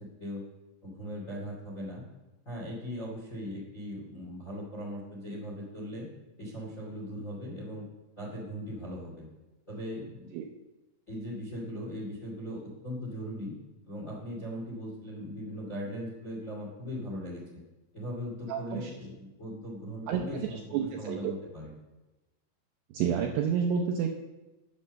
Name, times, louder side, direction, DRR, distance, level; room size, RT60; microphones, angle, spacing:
voice 1, 0.8-2.0 2.4-6.0 6.4-7.8 8.2-9.2 9.7-10.3 11.1-13.5 13.8-17.4 17.9-21.7, equal, 35° left, -3 dB, 1.2 m, -39 dB
voice 2, 18.5-18.9 20.1-20.2 20.5-21.3 22.9-24.1, right 7 dB, 80° right, 2 dB, 2.4 m, -29 dB
10.0 x 8.4 x 6.4 m, 1.1 s
omnidirectional pair, 5.7 m